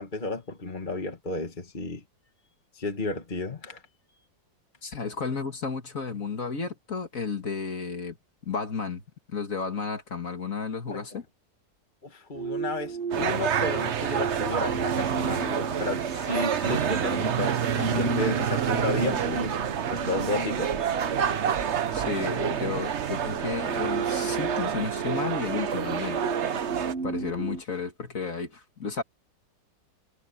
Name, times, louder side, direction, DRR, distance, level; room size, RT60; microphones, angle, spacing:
voice 1, 0.0-2.0 2.7-3.8 4.1-4.2 10.9-11.2 12.0-19.6 19.9-20.8 21.4-21.7, left 2 dB, 25° left, 1.7 m, -33 dB
voice 2, 4.8-8.2 8.5-9.0 9.3-11.2 21.9-26.8 27.0-29.0, left 5 dB, 45° left, 2.3 m, -33 dB
sound 1, 12.3-27.6, right 4 dB, 35° right, 1.5 m, -35 dB
sound 2, 13.1-26.9, right 8 dB, 50° right, 0.9 m, -28 dB
omnidirectional pair, 2.0 m